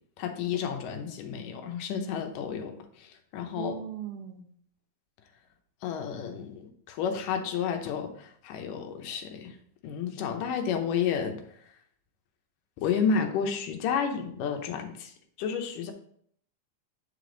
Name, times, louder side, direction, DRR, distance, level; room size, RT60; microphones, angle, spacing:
voice 1, 0.2-3.8 5.8-9.6 9.8-11.4 12.8-15.9, left 7 dB, 85° left, 5 dB, 2.5 m, -31 dB
voice 2, 3.6-4.5, right 8 dB, 65° right, 5 dB, 1.6 m, -38 dB
9.0 x 5.1 x 3.9 m, 0.62 s
omnidirectional pair, 3.7 m